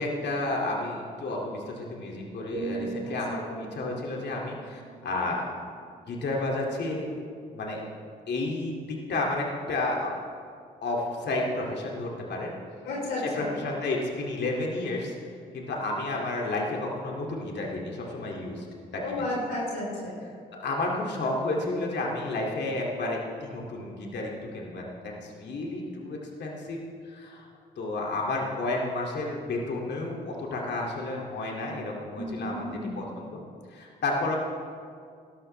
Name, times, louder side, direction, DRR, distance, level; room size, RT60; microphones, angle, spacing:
voice 1, 0.0-5.4 6.1-7.1 7.5-7.8 8.3-10.1 10.8-12.5 13.2-15.1 15.5-18.7 18.9-19.2 20.6-27.5 27.8-32.7 33.0-33.4 33.7-34.4, left 2 dB, 60° left, -2 dB, 2.5 m, -31 dB
sound 1, 2.5-6.4 6.9-7.2, right 3 dB, 65° right, 2.2 m, -40 dB
voice 2, 12.8-13.5 19.0-20.2 32.1-33.2, left 1 dB, 85° left, -5 dB, 3.7 m, -33 dB
19.0 x 12.0 x 3.3 m, 2.2 s
hypercardioid pair, 50°, 19 cm